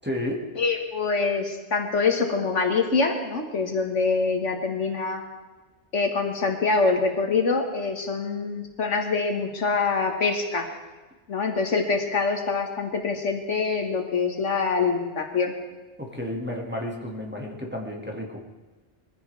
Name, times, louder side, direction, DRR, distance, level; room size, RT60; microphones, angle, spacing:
voice 1, 0.0-0.5 16.0-18.4, left 1 dB, 10° right, -2 dB, 2.1 m, -32 dB
voice 2, 0.6-5.2 5.9-10.7 11.3-15.5, left 4 dB, 90° left, 3 dB, 2.0 m, -25 dB
22.5 x 15.0 x 3.5 m, 1.3 s
omnidirectional pair, 1.2 m